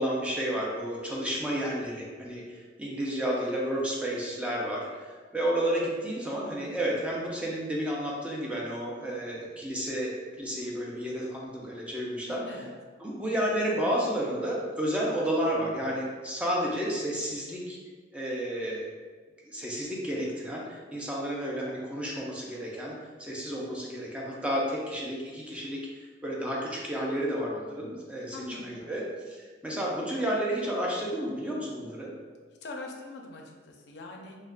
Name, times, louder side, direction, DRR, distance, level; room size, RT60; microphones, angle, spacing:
voice 1, 0.0-10.1 10.4-12.4 13.0-17.8 18.1-18.8 19.5-32.1, equal, 5° right, -4 dB, 0.4 m, -31 dB
voice 2, 12.3-12.7 28.3-28.9 32.6-34.4, left 2 dB, 65° left, 1 dB, 0.4 m, -42 dB
2.3 x 2.2 x 3.5 m, 1.5 s
head